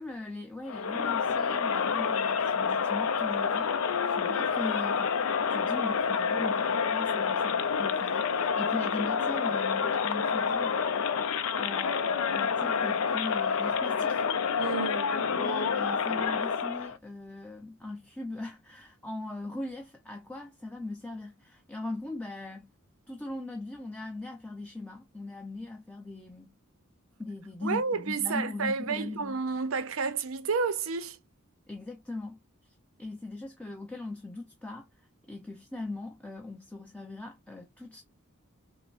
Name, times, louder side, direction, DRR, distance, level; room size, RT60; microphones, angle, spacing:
voice 1, 0.0-5.2 5.5-11.1 11.5-14.2 15.1-22.7 23.1-26.6 27.2-29.3 31.7-32.4 32.6-34.9 35.3-38.0, left 2 dB, 5° left, 0.5 m, -40 dB
Crowd, 0.7-17.0, left 6 dB, 75° left, 0.5 m, -28 dB
voice 2, 14.6-15.2 27.6-31.2, right 5 dB, 70° right, 0.6 m, -30 dB
5.6 x 2.1 x 2.5 m
head